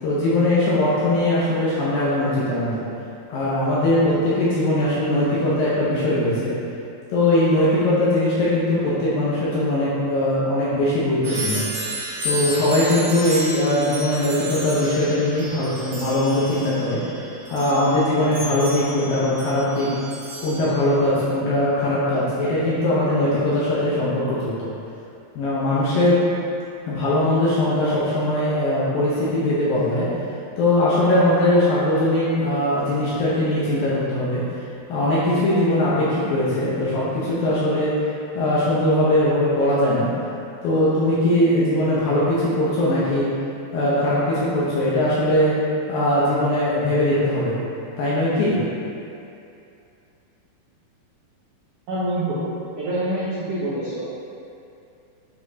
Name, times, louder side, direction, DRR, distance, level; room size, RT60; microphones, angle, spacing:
voice 1, 0.0-2.8 3.3-6.5 7.1-11.6 12.2-17.0 17.5-19.9 20.4-24.7 25.4-26.2 26.9-30.1 30.6-34.4 34.9-37.9 38.4-40.1 40.6-43.3 43.7-45.6 45.9-47.5 48.0-48.6, left 1 dB, 75° left, -8 dB, 2.2 m, -20 dB
sound 1, 11.2-20.7, right 1 dB, 65° right, 1.7 m, -32 dB
voice 2, 51.9-52.4 52.8-54.1, right 1 dB, 90° right, -9 dB, 1.7 m, -26 dB
8.0 x 5.2 x 2.8 m, 2.6 s
omnidirectional pair, 5.0 m